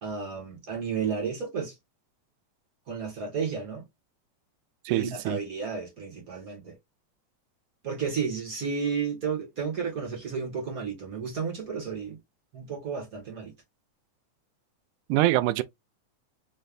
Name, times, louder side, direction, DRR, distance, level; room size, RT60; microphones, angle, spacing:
voice 1, 0.0-1.7 2.9-3.8 4.9-6.8 7.8-12.2 12.5-13.5, right 6 dB, 40° right, 1.4 m, -32 dB
voice 2, 4.9-5.4 15.1-15.6, right 16 dB, 90° right, 2.1 m, -24 dB
5.3 x 3.2 x 2.5 m
omnidirectional pair, 3.5 m